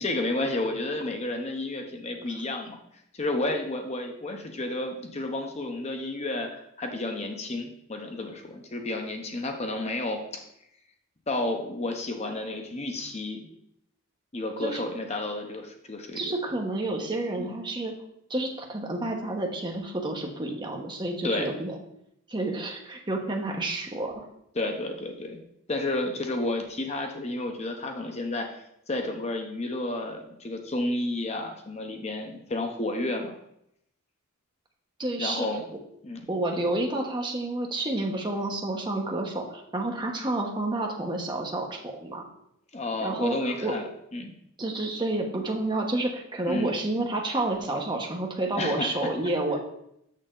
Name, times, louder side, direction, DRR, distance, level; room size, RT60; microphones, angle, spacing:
voice 1, 0.0-2.8 3.1-10.4 11.3-13.5 14.3-16.3 17.4-17.5 21.2-21.5 24.5-25.4 25.7-28.6 28.9-33.3 35.2-35.6 36.0-36.3 42.7-43.9 44.1-44.3 46.4-46.7 48.6-49.1, left 2 dB, 30° left, 4 dB, 0.8 m, -31 dB
voice 2, 16.1-17.9 18.3-21.8 22.3-24.3 35.0-35.5 36.3-42.3 43.0-43.7 44.6-49.6, right 2 dB, 20° right, 1 dB, 1.0 m, -30 dB
6.7 x 6.6 x 3.8 m, 0.76 s
head